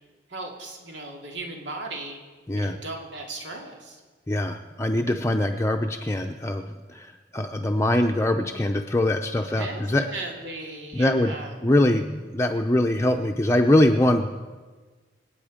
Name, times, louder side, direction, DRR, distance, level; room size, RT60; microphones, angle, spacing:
voice 1, 0.3-2.2 2.5-4.0 9.5-11.5, right 2 dB, 90° right, 1 dB, 2.4 m, -36 dB
voice 2, 4.3-10.0 10.9-11.3 11.6-14.3, left 1 dB, 15° left, 3 dB, 0.6 m, -23 dB
27.0 x 9.1 x 5.1 m, 1.3 s
head